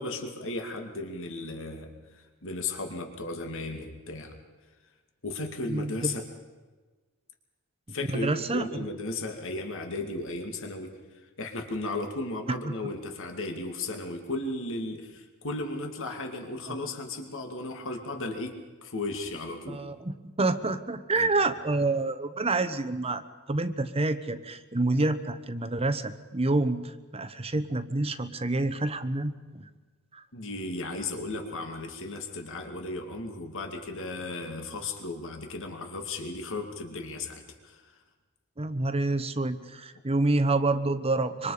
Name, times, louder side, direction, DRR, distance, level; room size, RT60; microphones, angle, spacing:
voice 1, 0.0-4.4 5.2-6.2 7.9-10.9 11.4-18.5 18.8-19.8 21.2-21.3 30.3-37.8, left 2 dB, 60° left, 4 dB, 2.5 m, -35 dB
voice 2, 5.7-6.1 8.1-8.7 12.6-12.7 16.7-16.8 19.7-29.6 30.1-30.2 38.6-41.5, right 2 dB, 25° right, 10 dB, 1.0 m, -28 dB
26.0 x 24.5 x 5.1 m, 1.3 s
head